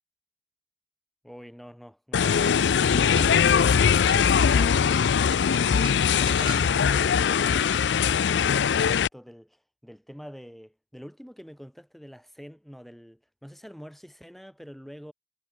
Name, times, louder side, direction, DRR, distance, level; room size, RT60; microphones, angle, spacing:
voice 1, 1.2-4.9 5.6-15.1, equal, ahead, 6.2 m, -46 dB
sound 1, 2.1-9.1, left 7 dB, 80° left, 0.4 m, -21 dB
sound 2, 3.2-7.3, right 3 dB, 30° right, 0.9 m, -41 dB
head